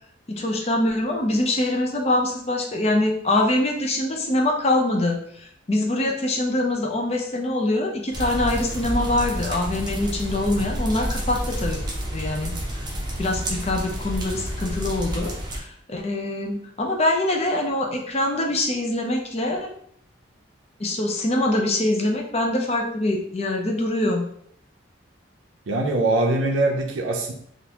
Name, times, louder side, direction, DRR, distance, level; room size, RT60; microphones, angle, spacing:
voice 1, 0.3-11.8 12.1-12.5 13.2-19.7 20.8-24.2, left 1 dB, 35° left, 2 dB, 0.6 m, -24 dB
sound 1, 8.1-15.6, equal, 25° right, 0.6 m, -29 dB
voice 2, 25.7-27.3, right 2 dB, 85° right, 1 dB, 0.5 m, -22 dB
3.7 x 2.5 x 2.9 m, 0.65 s
head